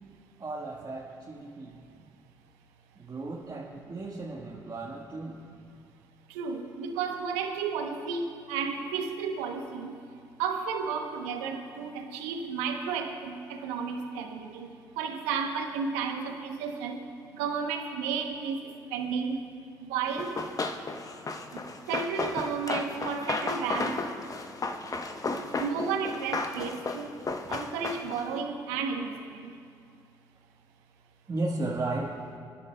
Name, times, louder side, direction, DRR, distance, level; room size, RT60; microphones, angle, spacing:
voice 1, 0.4-1.8 2.9-5.4 31.3-32.2, right 2 dB, 35° right, -3 dB, 1.4 m, -35 dB
voice 2, 6.3-9.9 10.4-14.7 15.0-17.0 17.3-18.6 18.9-19.4 19.8-20.3 21.9-24.0 25.6-27.1 27.5-29.1, right 6 dB, 80° right, 4 dB, 0.9 m, -32 dB
Run, 20.2-28.3, left 3 dB, 35° left, 0.9 m, -34 dB
29.5 x 10.0 x 2.2 m, 2.3 s
hypercardioid pair, 50°, 10 cm